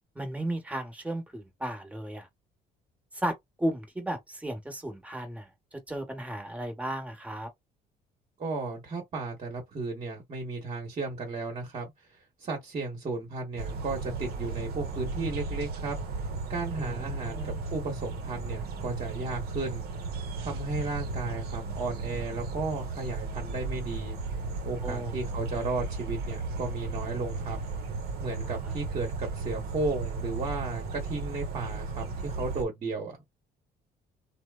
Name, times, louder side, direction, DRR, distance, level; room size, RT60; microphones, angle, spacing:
voice 1, 0.1-2.3 3.1-7.5 16.8-17.7 24.8-25.2 28.4-28.6, right 1 dB, 10° right, 1.0 m, -35 dB
voice 2, 8.4-19.9 20.4-24.2 24.6-27.6 28.2-33.2, right 3 dB, 40° right, 1.1 m, -34 dB
sound 1, 13.6-32.6, right 3 dB, 65° right, 0.8 m, -35 dB
2.9 x 2.1 x 2.3 m
cardioid pair, 110°, 17 cm